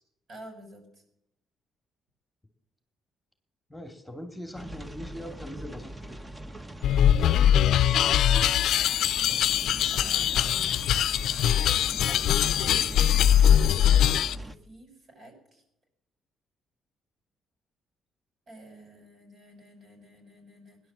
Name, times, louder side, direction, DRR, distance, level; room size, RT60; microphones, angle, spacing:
voice 1, 0.3-0.8 7.9-8.4 9.9-10.8 12.1-12.9 13.6-15.6 18.5-20.8, right 1 dB, 55° right, 4 dB, 6.8 m, -48 dB
voice 2, 3.7-6.2 7.2-7.7 9.2-9.5, equal, 5° left, 6 dB, 2.5 m, -42 dB
sound 1, 4.5-14.5, right 1 dB, 15° right, 1.1 m, -41 dB
sound 2, 6.8-14.4, left 10 dB, 75° left, 0.5 m, -22 dB
17.0 x 11.0 x 7.5 m, 0.81 s
cardioid pair, 90°, 0 cm